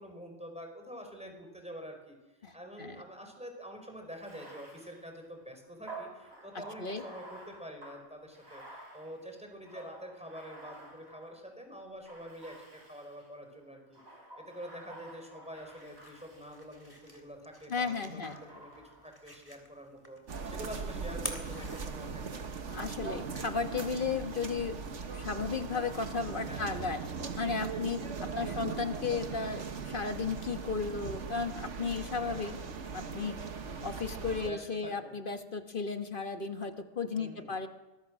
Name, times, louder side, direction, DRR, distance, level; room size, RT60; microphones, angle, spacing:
voice 1, 0.0-14.0 14.4-18.7 19.0-20.2 20.4-22.6 26.4-26.9 28.2-28.6 32.2-32.6 34.4-35.1 37.1-37.5, equal, 5° right, 4 dB, 4.8 m, -47 dB
voice 2, 2.4-3.0 6.8-7.0 17.7-18.4 22.7-24.8 25.1-27.0 27.4-32.6 32.9-33.4 33.8-37.7, left 5 dB, 45° left, 7 dB, 1.5 m, -34 dB
Bathtub (filling or washing), 4.1-11.5 12.0-13.3 13.9-17.1 18.2-19.2, right 2 dB, 60° right, 4.8 m, -51 dB
sound 1, 15.6-22.5, equal, 15° left, 3.2 m, -48 dB
sound 2, 20.3-34.5, right 5 dB, 75° right, 1.6 m, -39 dB
23.5 x 21.0 x 6.3 m, 1.1 s
omnidirectional pair, 1.2 m